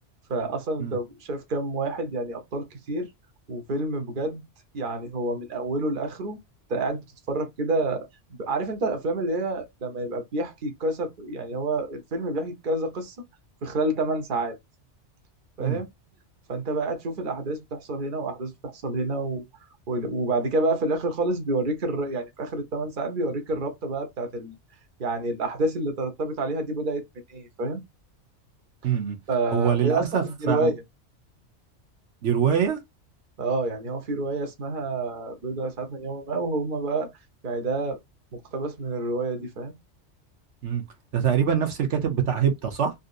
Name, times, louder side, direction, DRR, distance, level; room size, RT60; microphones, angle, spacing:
voice 1, 0.3-3.1 3.5-4.4 4.7-6.4 6.7-7.0 7.3-8.1 8.4-13.1 13.6-14.6 15.6-15.9 16.5-19.4 19.9-24.5 25.0-27.0 27.3-27.8 29.3-30.8 33.4-37.1 37.4-38.0 38.3-39.7, right 2 dB, 45° right, 1.1 m, -28 dB
voice 2, 28.8-29.2 29.5-30.7 32.2-32.8 40.6-40.8 41.1-42.9, right 8 dB, 75° right, 1.2 m, -24 dB
4.0 x 2.6 x 2.4 m
omnidirectional pair, 1.2 m